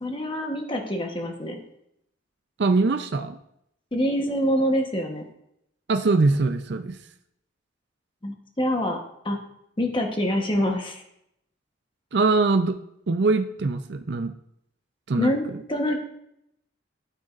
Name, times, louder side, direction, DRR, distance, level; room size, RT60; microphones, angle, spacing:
voice 1, 0.0-1.6 3.9-5.3 8.2-9.0 9.2-9.4 9.8-11.0 15.2-15.4 15.7-16.0, equal, 25° left, 3 dB, 1.1 m, -25 dB
voice 2, 2.6-3.4 5.9-7.0 12.1-12.8 13.1-14.3 15.1-15.6, right 3 dB, 60° right, 7 dB, 0.5 m, -22 dB
13.0 x 9.0 x 2.5 m, 0.78 s
head